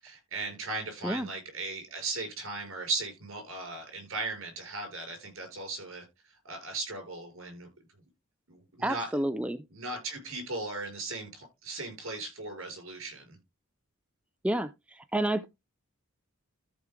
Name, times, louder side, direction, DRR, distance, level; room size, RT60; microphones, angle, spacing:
voice 1, 0.0-7.7 8.5-9.1 9.7-13.4, right 3 dB, 65° right, 5.5 m, -37 dB
voice 2, 8.8-9.6 14.4-15.5, right 1 dB, 5° right, 0.4 m, -30 dB
13.5 x 4.6 x 3.7 m
head